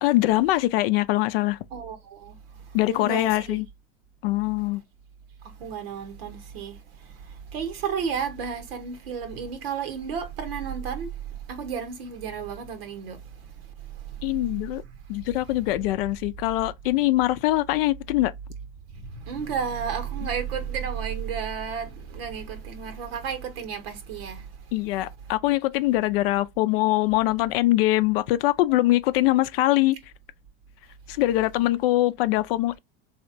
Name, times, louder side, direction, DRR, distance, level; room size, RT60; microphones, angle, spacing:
voice 1, 0.0-1.6 2.7-3.7 4.2-4.8 14.2-14.8 15.1-18.3 24.7-30.0 31.1-32.8, left 16 dB, 75° left, 0.5 m, -23 dB
voice 2, 1.7-3.6 5.4-13.5 13.8-14.3 18.9-24.7, right 7 dB, 85° right, 0.8 m, -33 dB
3.3 x 2.8 x 2.5 m
hypercardioid pair, 85°, 29 cm